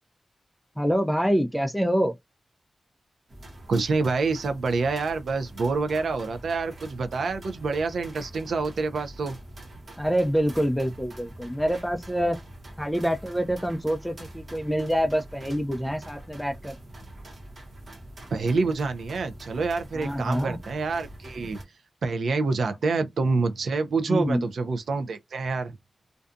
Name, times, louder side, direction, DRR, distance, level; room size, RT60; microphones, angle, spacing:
voice 1, 0.8-2.2 10.0-12.4 12.8-16.7 19.9-20.6 24.1-24.5, equal, ahead, 0.4 m, -26 dB
sound 1, 3.3-21.6, right 1 dB, 45° right, 0.9 m, -44 dB
voice 2, 3.7-9.4 18.3-21.6 22.0-25.8, right 4 dB, 85° right, 0.5 m, -27 dB
2.6 x 2.3 x 2.4 m
wide cardioid pair, 175°, 0 cm